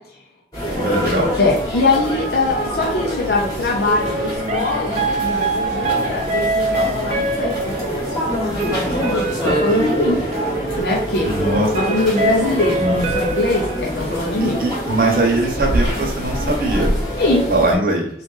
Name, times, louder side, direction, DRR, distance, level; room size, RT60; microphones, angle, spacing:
sound 1, 0.5-17.8, equal, 20° left, 1.2 m, -25 dB
voice 1, 0.6-1.3 11.2-11.7 12.8-13.0 14.4-16.9 17.5-18.1, right 2 dB, 50° right, 0 dB, 0.9 m, -20 dB
voice 2, 1.4-10.2 10.8-11.3 11.7-14.6 17.2-17.5, left 2 dB, 60° left, -2 dB, 0.6 m, -22 dB
sound 2, 4.0-14.5, right 2 dB, 35° right, 0.6 m, -24 dB
3.7 x 2.5 x 3.8 m, 0.69 s
head